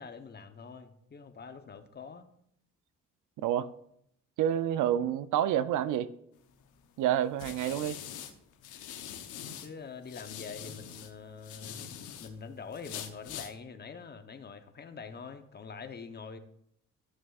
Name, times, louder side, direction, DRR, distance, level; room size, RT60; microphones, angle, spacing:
voice 1, 0.0-2.3 9.6-11.8 12.2-16.4, left 5 dB, 35° left, 0.9 m, -45 dB
voice 2, 4.4-6.1 7.0-8.0, right 11 dB, 85° right, 0.5 m, -28 dB
sound 1, 6.5-9.7 10.0-12.3 12.7-13.5, left 9 dB, 85° left, 0.9 m, -43 dB
13.5 x 6.1 x 2.4 m
cardioid pair, 90°, 30 cm